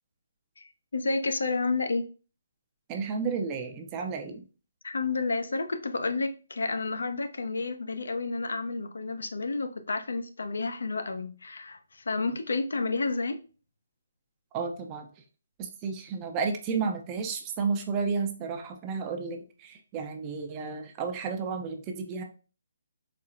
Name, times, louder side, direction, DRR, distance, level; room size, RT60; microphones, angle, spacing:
voice 1, 0.9-2.1 4.8-13.4, left 3 dB, 80° left, 0.5 m, -30 dB
voice 2, 2.9-4.4 14.5-15.1 15.6-22.2, right 5 dB, 20° right, 0.4 m, -32 dB
4.2 x 2.1 x 2.5 m
hypercardioid pair, 160°, 0 cm